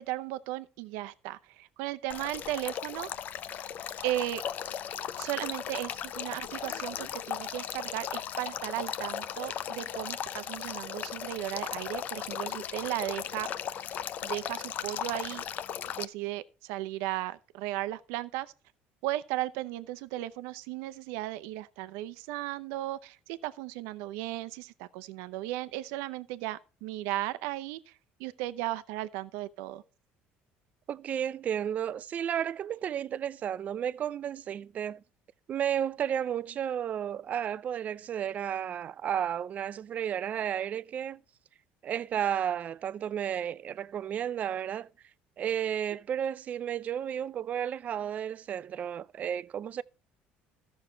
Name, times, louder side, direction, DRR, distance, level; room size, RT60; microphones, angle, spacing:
voice 1, 0.0-3.1 4.0-4.4 5.2-13.5 14.2-15.4 16.0-18.5 19.0-27.9 28.2-29.8, right 16 dB, 90° right, 0.7 m, -36 dB
Male speech man speaking / Stream / Trickle dribble, 2.1-16.0, left 9 dB, 45° left, 0.5 m, -37 dB
voice 2, 30.9-35.0 35.5-41.2 41.8-44.9 45.4-49.8, right 9 dB, 40° right, 0.4 m, -32 dB
14.0 x 6.4 x 4.4 m
cardioid pair, 135°, 4 cm